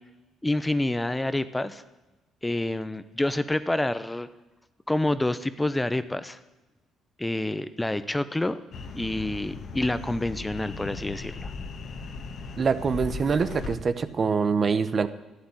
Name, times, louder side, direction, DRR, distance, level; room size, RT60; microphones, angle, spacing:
voice 1, 0.4-1.8 2.4-4.3 4.9-6.4 7.2-8.6 8.9-11.5, left 1 dB, 15° left, 13 dB, 0.8 m, -28 dB
sound 1, 8.7-13.8, left 4 dB, 60° left, 1.4 m, -37 dB
voice 2, 12.6-15.1, right 5 dB, 45° right, 12 dB, 0.8 m, -24 dB
11.5 x 8.7 x 9.7 m, 1.1 s
supercardioid pair, 60°, 0 cm